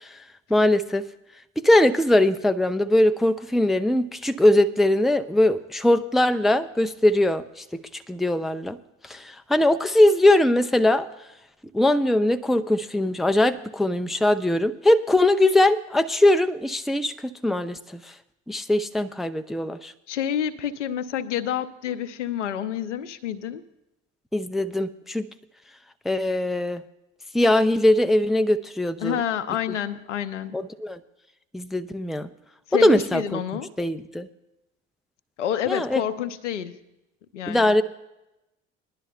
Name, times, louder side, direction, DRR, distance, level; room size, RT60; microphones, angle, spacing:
voice 1, 0.5-1.0 1.6-7.4 7.7-8.8 9.1-11.1 11.7-18.0 18.5-19.9 24.3-25.3 26.1-26.8 27.3-29.2 30.5-31.0 31.5-32.3 32.7-33.4 33.8-34.3 35.7-36.0 37.5-37.8, left 1 dB, ahead, 10 dB, 0.4 m, -21 dB
voice 2, 20.1-23.6 29.0-30.7 32.7-33.7 35.4-36.8 37.3-37.8, left 10 dB, 80° left, 11 dB, 0.7 m, -28 dB
21.0 x 11.0 x 2.3 m, 0.91 s
figure-of-eight pair, 60°, 36 cm